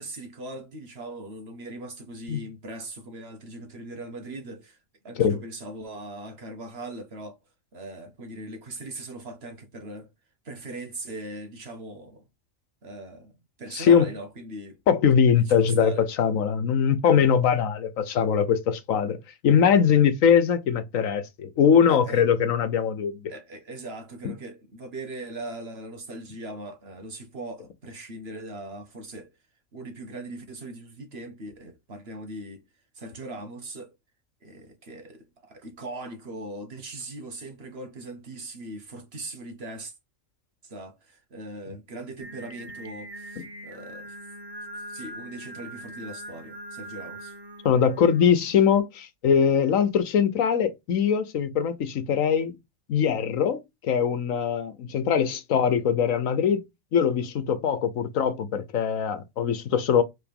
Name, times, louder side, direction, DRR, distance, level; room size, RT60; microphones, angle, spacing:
voice 1, 0.0-4.8 5.0-7.4 7.7-10.1 10.4-12.3 12.8-13.3 13.6-14.8 15.3-16.1 21.9-22.3 23.3-29.3 29.7-32.6 32.9-33.9 34.4-39.9 40.6-44.2 44.9-47.3, right 2 dB, 50° right, 1.5 m, -40 dB
voice 2, 13.7-14.1 14.9-19.2 19.4-23.3 47.6-52.6 52.9-56.6 56.9-60.0, left 7 dB, 85° left, 1.3 m, -22 dB
Singing, 42.2-48.8, right 1 dB, 20° right, 0.9 m, -42 dB
4.9 x 4.0 x 5.3 m
omnidirectional pair, 1.3 m